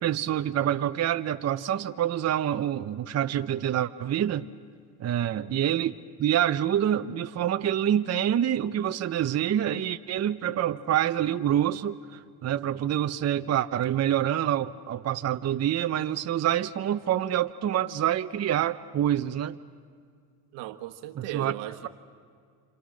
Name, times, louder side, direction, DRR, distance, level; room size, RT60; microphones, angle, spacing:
voice 1, 0.0-4.5 5.0-5.9 6.2-19.6 21.2-21.5, right 11 dB, 35° right, 0.8 m, -26 dB
voice 2, 20.5-21.9, right 14 dB, 70° right, 1.4 m, -37 dB
29.5 x 26.5 x 6.4 m
supercardioid pair, 80°, 44 cm